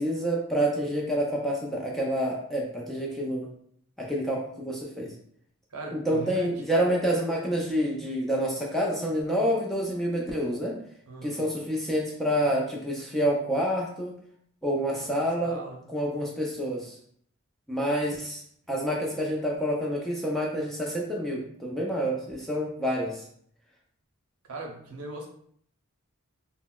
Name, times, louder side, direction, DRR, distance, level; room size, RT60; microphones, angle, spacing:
voice 1, 0.0-3.5 4.0-5.1 5.9-10.8 11.2-14.1 14.6-15.6 15.9-17.0 17.7-18.4 18.7-23.2, equal, ahead, -3 dB, 0.4 m, -28 dB
voice 2, 5.7-6.5 11.1-11.5 14.9-15.1 15.4-15.8 24.5-25.3, right 2 dB, 80° right, 1 dB, 0.6 m, -39 dB
3.8 x 2.0 x 2.3 m, 0.64 s
head